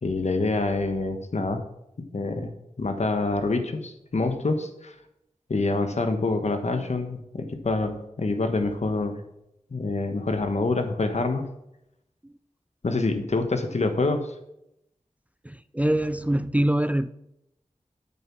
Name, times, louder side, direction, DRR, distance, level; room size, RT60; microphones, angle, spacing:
voice 1, 0.0-1.6 2.1-2.5 2.8-4.9 5.5-9.2 9.7-11.5 12.8-14.3, left 3 dB, 65° left, 7 dB, 1.2 m, -26 dB
voice 2, 15.4-17.1, right 1 dB, 10° right, 13 dB, 0.3 m, -24 dB
8.4 x 6.9 x 6.1 m, 0.83 s
wide cardioid pair, 85°, 13 cm